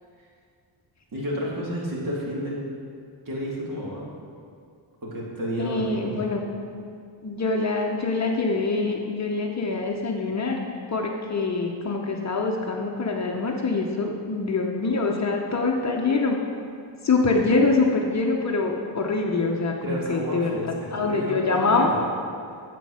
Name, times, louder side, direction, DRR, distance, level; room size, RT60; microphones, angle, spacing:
voice 1, 1.1-2.6 3.3-4.1 5.0-6.2 19.8-22.0, equal, 45° right, -4 dB, 2.4 m, -31 dB
voice 2, 5.6-6.4 7.2-16.4 17.0-21.9, left 3 dB, 35° left, 1 dB, 0.8 m, -25 dB
9.0 x 7.7 x 6.3 m, 2.3 s
wide cardioid pair, 165°, 47 cm